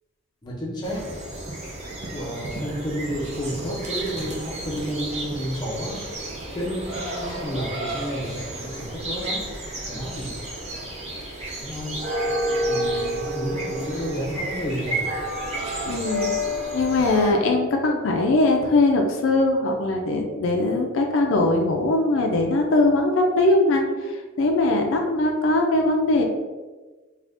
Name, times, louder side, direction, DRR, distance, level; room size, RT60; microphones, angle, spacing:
voice 1, 0.4-1.1 2.1-6.0 6.5-9.5 9.9-10.3 11.6-12.0 12.7-15.1, equal, 20° left, -3 dB, 0.6 m, -31 dB
sound 1, 0.8-17.3, right 1 dB, 30° right, 0.6 m, -30 dB
voice 2, 15.9-16.3 16.7-26.2, left 2 dB, 65° left, 2 dB, 0.4 m, -21 dB
2.5 x 2.4 x 3.4 m, 1.3 s
head